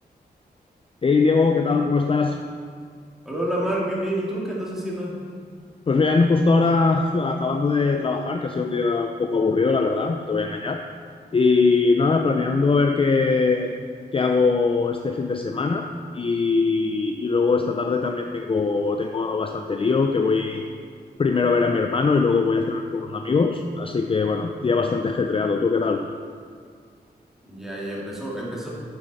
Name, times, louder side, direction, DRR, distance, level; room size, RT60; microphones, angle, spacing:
voice 1, 1.0-2.4 5.9-10.8 11.3-13.7 14.1-15.9 16.1-20.7 21.2-26.0, left 4 dB, 30° left, 4 dB, 0.4 m, -21 dB
voice 2, 3.2-5.2 27.4-28.7, right 1 dB, ahead, -5 dB, 2.2 m, -28 dB
8.9 x 7.2 x 4.1 m, 2.1 s
wide cardioid pair, 95°, 17 cm